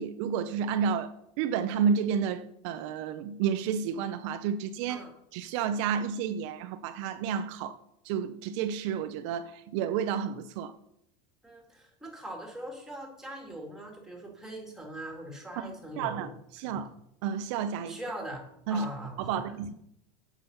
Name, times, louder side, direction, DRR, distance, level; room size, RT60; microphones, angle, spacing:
voice 1, 0.0-5.0 5.3-7.8 8.0-10.7 15.6-16.9 17.2-18.0 18.7-18.9 19.2-19.7, right 7 dB, 65° right, 0.6 m, -31 dB
voice 2, 11.4-16.3 16.6-16.8 17.9-19.4, right 1 dB, 5° right, 2.2 m, -41 dB
8.7 x 6.1 x 5.5 m
supercardioid pair, 140°, 17 cm